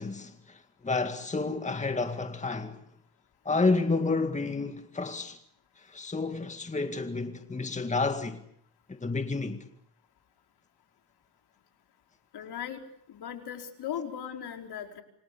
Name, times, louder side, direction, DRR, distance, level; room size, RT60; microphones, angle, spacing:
voice 1, 0.0-2.8 3.5-5.4 5.9-8.4 8.9-9.7, left 3 dB, 15° left, 2.0 m, -30 dB
voice 2, 12.3-12.8 13.1-15.0, left 9 dB, 65° left, 4.8 m, -38 dB
28.5 x 25.5 x 6.9 m
cardioid pair, 105°, 43 cm